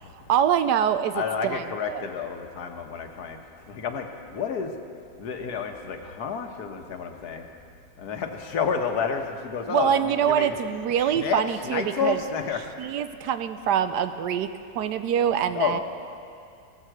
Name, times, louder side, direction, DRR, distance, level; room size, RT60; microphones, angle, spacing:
voice 1, 0.3-1.6 1.9-2.1 9.7-12.2 12.8-14.5 14.7-15.8, right 9 dB, 75° right, 11 dB, 1.1 m, -24 dB
voice 2, 1.1-4.8 5.2-7.5 8.0-10.6 11.0-12.9 15.5-15.8, left 6 dB, 65° left, 5 dB, 1.4 m, -30 dB
17.0 x 7.6 x 7.8 m, 2.4 s
omnidirectional pair, 1.9 m